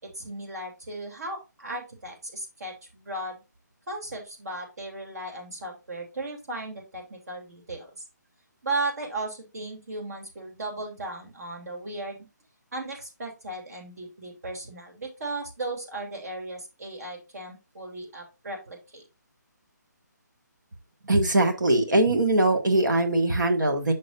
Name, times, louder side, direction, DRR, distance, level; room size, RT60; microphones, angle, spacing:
voice 1, 0.0-3.4 3.9-7.9 8.6-12.3 12.7-19.0, right 2 dB, 55° right, 2 dB, 3.0 m, -36 dB
voice 2, 21.1-23.9, right 2 dB, 80° right, 4 dB, 1.5 m, -21 dB
7.8 x 6.2 x 2.6 m, 0.27 s
figure-of-eight pair, 155°, 10 cm